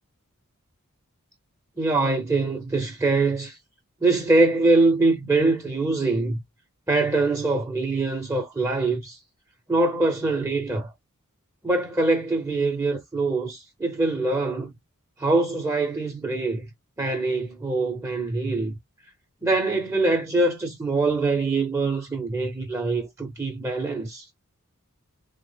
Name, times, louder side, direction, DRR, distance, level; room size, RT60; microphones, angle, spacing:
voice 1, 1.8-3.6 4.0-6.4 6.9-9.2 9.7-10.9 11.6-14.7 15.2-16.7 17.0-18.7 19.4-24.2, right 3 dB, 15° right, 0.5 m, -23 dB
3.2 x 2.0 x 3.3 m
head